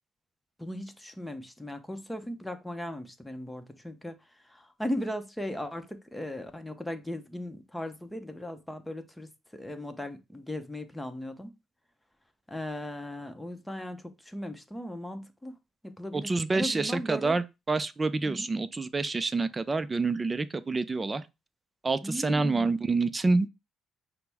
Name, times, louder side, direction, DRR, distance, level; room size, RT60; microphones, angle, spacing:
voice 1, 0.6-4.1 4.4-11.5 12.5-15.6 15.8-17.4 18.3-18.5 22.0-22.8, left 1 dB, 10° left, 0.8 m, -37 dB
voice 2, 16.1-21.2 21.8-23.5, right 3 dB, 30° right, 0.4 m, -27 dB
5.7 x 2.1 x 3.4 m
supercardioid pair, 70°, 0 cm